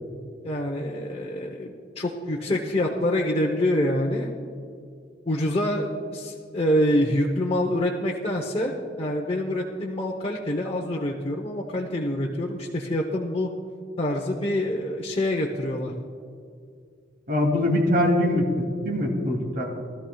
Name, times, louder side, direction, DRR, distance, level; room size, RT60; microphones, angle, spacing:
voice 1, 0.4-4.3 5.3-13.5 14.0-15.9, left 1 dB, 35° left, -1 dB, 0.8 m, -26 dB
voice 2, 17.3-19.8, left 1 dB, 55° right, -1 dB, 2.5 m, -23 dB
20.0 x 12.5 x 2.3 m, 2.2 s
head